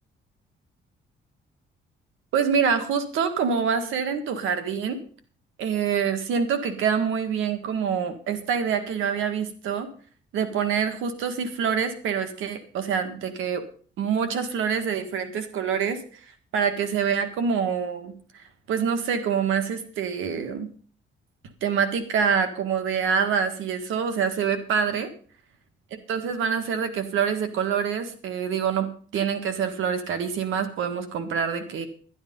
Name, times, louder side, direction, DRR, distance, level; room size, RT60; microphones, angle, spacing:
voice 1, 2.3-5.0 5.6-9.9 10.3-13.6 14.0-16.0 16.5-20.7 21.6-25.1 26.1-28.9 29.1-31.9, right 7 dB, 85° right, 9 dB, 1.8 m, -26 dB
11.0 x 10.5 x 5.3 m, 0.43 s
cardioid pair, 90°, 20 cm